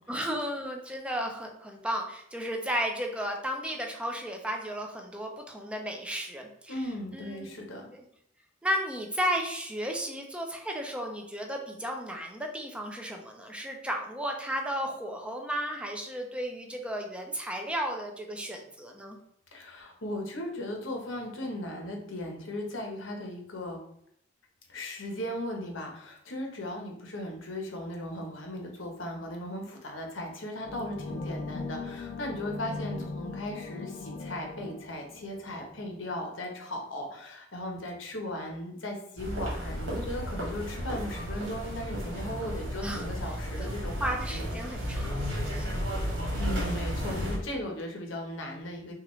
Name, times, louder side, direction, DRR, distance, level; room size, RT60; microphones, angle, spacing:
voice 1, 0.1-6.7 7.1-7.5 7.9-8.0 8.6-19.2 42.8-43.1 43.6-43.7 44.0-45.7 47.0-47.3, equal, 5° right, 2 dB, 0.6 m, -34 dB
voice 2, 6.7-7.9 19.5-23.8 24.7-44.5 46.4-48.9, left 1 dB, 85° left, 1 dB, 1.1 m, -37 dB
sound 1, 30.6-36.0, left 3 dB, 40° left, 0.4 m, -39 dB
sound 2, 39.2-47.4, equal, 80° right, 1.8 m, -33 dB
5.8 x 2.5 x 3.1 m, 0.70 s
head